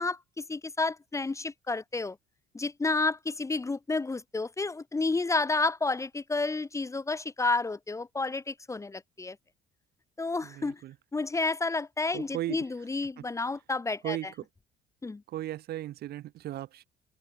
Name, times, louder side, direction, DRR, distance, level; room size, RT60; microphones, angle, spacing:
voice 1, 0.0-2.2 2.5-9.4 10.2-10.8 11.1-14.2 15.0-15.2, left 3 dB, 20° left, 1.5 m, -30 dB
voice 2, 10.4-11.0 12.1-12.9 13.2-13.3 14.0-14.5 15.3-16.9, right 14 dB, 70° right, 3.6 m, -37 dB
cardioid pair, 110°, 17 cm